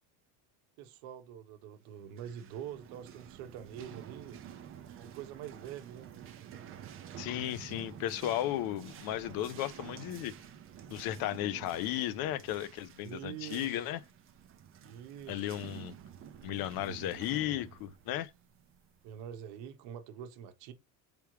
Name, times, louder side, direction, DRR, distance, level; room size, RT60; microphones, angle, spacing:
voice 1, 0.8-4.4 5.0-6.1 13.0-13.9 14.8-15.6 19.0-20.7, right 9 dB, 80° right, 0.9 m, -45 dB
sound 1, 2.0-19.4, right 9 dB, 30° right, 0.4 m, -50 dB
voice 2, 7.2-10.3 10.9-14.0 15.3-15.9 16.4-18.3, left 13 dB, 50° left, 0.5 m, -35 dB
3.4 x 3.0 x 4.6 m
cardioid pair, 170°, 47 cm